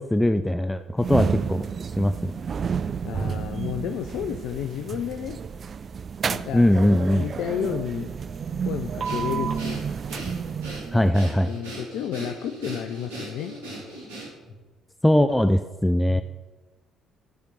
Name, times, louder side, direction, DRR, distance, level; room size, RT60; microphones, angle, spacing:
voice 1, 0.0-1.6 2.0-2.3 6.5-7.3 10.9-11.5 15.0-16.2, left 1 dB, 10° left, 9 dB, 0.5 m, -21 dB
sound 1, 1.0-11.2, right 6 dB, 45° right, 0.4 m, -31 dB
voice 2, 3.0-5.4 6.2-6.7 7.1-8.1 8.6-9.8 11.5-13.6 16.1-16.2, left 9 dB, 60° left, 7 dB, 0.5 m, -31 dB
Breathing, 9.0-14.6, right 1 dB, 70° right, 2.9 m, -38 dB
13.0 x 5.1 x 6.2 m, 1.2 s
figure-of-eight pair, 50°, 0 cm